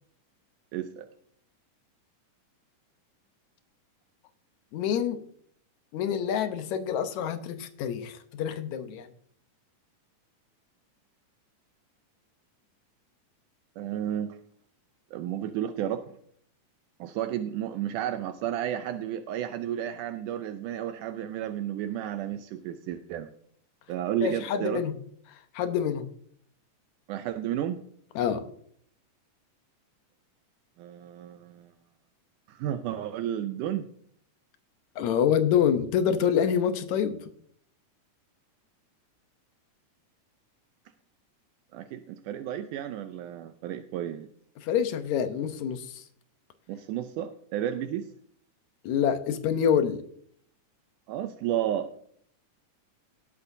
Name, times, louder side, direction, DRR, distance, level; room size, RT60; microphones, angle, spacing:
voice 1, 0.7-1.1 13.8-14.4 15.1-16.2 17.0-23.3 23.9-24.8 27.1-27.8 30.8-31.7 32.5-33.8 41.7-44.3 46.7-48.1 51.1-51.9, right 11 dB, 80° right, 8 dB, 2.1 m, -32 dB
voice 2, 4.7-5.2 5.9-9.1 24.2-24.9 25.3-26.1 28.2-28.4 35.0-37.2 44.6-46.0 48.8-50.0, left 8 dB, 70° left, 9 dB, 2.0 m, -26 dB
18.5 x 8.2 x 2.7 m, 0.64 s
omnidirectional pair, 3.7 m